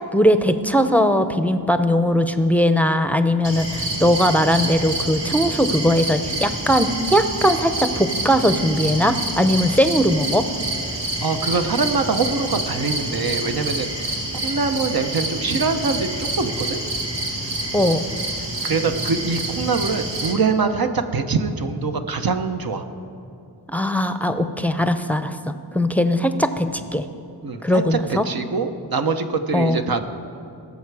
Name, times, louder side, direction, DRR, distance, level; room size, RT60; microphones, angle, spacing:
voice 1, 0.1-10.5 17.7-18.0 23.7-25.4 25.7-27.0 27.6-28.3 29.5-29.8, equal, 5° left, 9 dB, 0.7 m, -19 dB
crickets night short nice some skyline Montreal Canada, 3.4-20.3, right 2 dB, 85° right, 1.9 m, -27 dB
voice 2, 11.2-14.1 14.4-16.8 18.6-22.8 27.4-30.1, right 4 dB, 55° right, 7 dB, 1.0 m, -23 dB
19.0 x 6.8 x 4.8 m, 2.7 s
cardioid pair, 55°, 42 cm